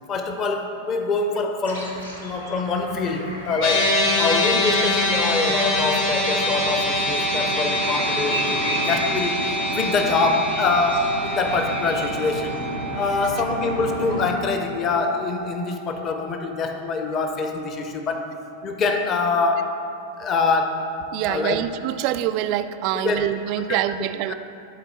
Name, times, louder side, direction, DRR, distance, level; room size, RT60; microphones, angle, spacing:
voice 1, 0.1-12.6 12.9-18.3 18.6-19.8 20.2-20.9 21.3-21.6 23.0-23.3 23.7-23.9 24.3-24.4, left 3 dB, 30° left, 5 dB, 0.7 m, -25 dB
sound 1, 1.6-14.3, equal, 80° left, 1.2 m, -32 dB
sound 2, 3.6-16.1, left 1 dB, 50° left, 1.3 m, -25 dB
voice 2, 21.1-24.3, right 12 dB, 45° right, 11 dB, 0.3 m, -25 dB
12.5 x 4.2 x 4.1 m, 2.5 s
figure-of-eight pair, 90°, 0 cm